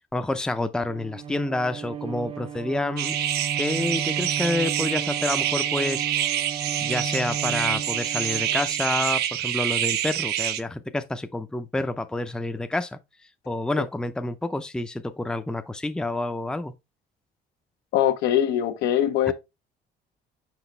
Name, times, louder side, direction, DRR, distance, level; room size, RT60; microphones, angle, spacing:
voice 1, 0.1-3.2 3.6-6.1 6.8-13.0 13.5-16.7 19.3-19.4, left 2 dB, 5° left, 0.6 m, -28 dB
Bowed string instrument, 0.8-9.2, right 7 dB, 35° right, 0.6 m, -35 dB
sound 1, 3.0-10.6, right 11 dB, 75° right, 0.7 m, -27 dB
voice 2, 17.9-19.3, left 11 dB, 85° left, 1.1 m, -22 dB
6.1 x 5.1 x 3.3 m
cardioid pair, 110°, 17 cm